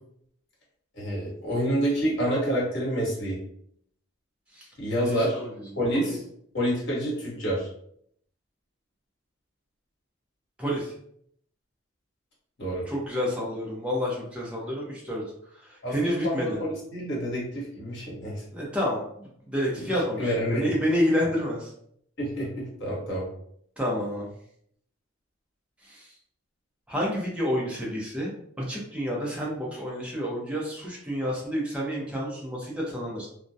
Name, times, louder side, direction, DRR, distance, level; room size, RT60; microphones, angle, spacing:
voice 1, 1.0-3.4 4.8-5.4 5.8-6.2 6.5-7.7 12.6-12.9 15.8-18.4 19.7-20.7 22.2-23.3, equal, 55° left, -5 dB, 1.1 m, -28 dB
voice 2, 5.1-5.5 6.1-6.2 10.6-10.9 12.9-15.2 15.6-16.6 18.5-21.7 23.8-24.3 25.8-26.1 26.9-28.3 28.7-33.3, equal, 5° right, -4 dB, 0.6 m, -29 dB
2.2 x 2.1 x 2.6 m, 0.68 s
head